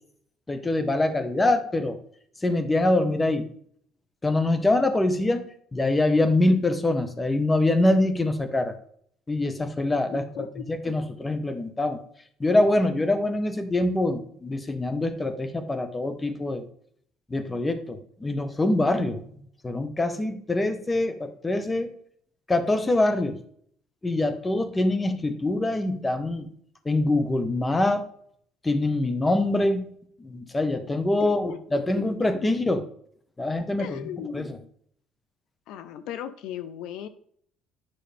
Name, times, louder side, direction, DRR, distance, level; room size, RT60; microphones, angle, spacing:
voice 1, 0.5-2.0 2.4-3.5 4.2-5.4 5.7-8.7 9.3-10.2 10.7-12.0 12.4-16.6 17.3-19.2 19.6-21.9 22.5-23.4 24.0-26.5 26.8-28.0 28.6-29.8 30.2-32.8 33.4-34.0 34.3-34.5, left 2 dB, 15° left, 9 dB, 1.3 m, -24 dB
voice 2, 10.1-10.9 31.2-31.6 33.8-34.7 35.7-37.1, left 9 dB, 75° left, 12 dB, 0.7 m, -37 dB
10.5 x 6.2 x 3.5 m, 0.62 s
cardioid pair, 105°, 0 cm